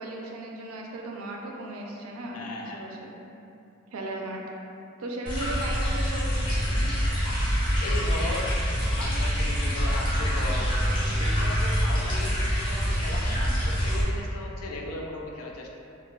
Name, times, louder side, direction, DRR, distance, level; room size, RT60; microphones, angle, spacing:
voice 1, 0.0-3.1 3.9-4.4 5.0-6.9, right 2 dB, 75° right, 0 dB, 0.4 m, -36 dB
voice 2, 2.3-2.9 7.8-8.5 9.0-10.7 11.2-15.7, left 2 dB, 80° left, 0 dB, 0.4 m, -37 dB
sound 1, 5.3-14.0, equal, 25° left, 0.6 m, -25 dB
3.7 x 2.2 x 2.3 m, 2.8 s
head